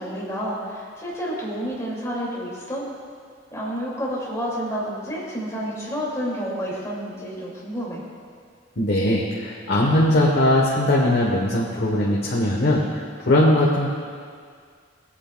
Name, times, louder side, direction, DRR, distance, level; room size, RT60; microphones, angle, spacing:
voice 1, 0.0-2.9 3.5-8.0, equal, 15° left, -6 dB, 2.4 m, -29 dB
voice 2, 8.8-12.8 13.3-13.9, left 1 dB, 55° left, -4 dB, 1.0 m, -20 dB
19.5 x 8.6 x 2.3 m, 2.1 s
head